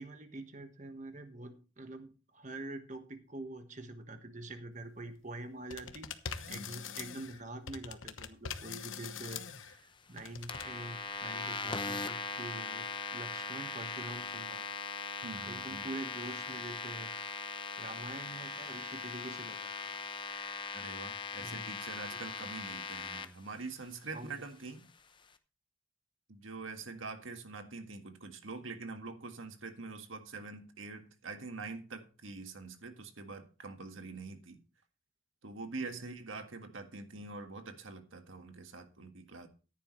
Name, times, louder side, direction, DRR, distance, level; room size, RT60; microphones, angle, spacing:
voice 1, 0.0-6.1 6.5-14.6 15.4-17.1 17.8-19.7 21.4-21.7 22.1-22.2 24.1-24.4 35.9-36.1, right 2 dB, 35° right, 1.4 m, -45 dB
sound 1, 5.7-7.4 7.7-9.8 10.2-10.6, left 7 dB, 75° left, 1.1 m, -43 dB
sound 2, 10.5-23.3, left 5 dB, 25° left, 0.8 m, -40 dB
voice 2, 15.2-15.9 20.7-24.8 26.3-34.6 35.4-39.5, right 3 dB, 75° right, 1.7 m, -45 dB
14.0 x 10.5 x 3.2 m
head